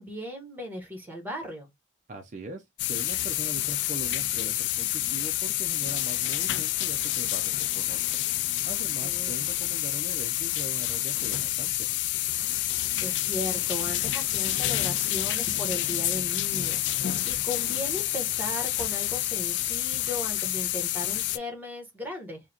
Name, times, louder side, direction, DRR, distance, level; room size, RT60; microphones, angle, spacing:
voice 1, 0.0-1.7 9.0-9.5 12.7-22.4, left 1 dB, 10° right, 1.2 m, -37 dB
voice 2, 2.1-8.2 8.6-11.9, right 2 dB, 40° right, 0.4 m, -41 dB
sound 1, 2.8-21.4, left 14 dB, 70° left, 0.3 m, -28 dB
4.8 x 2.2 x 2.8 m
head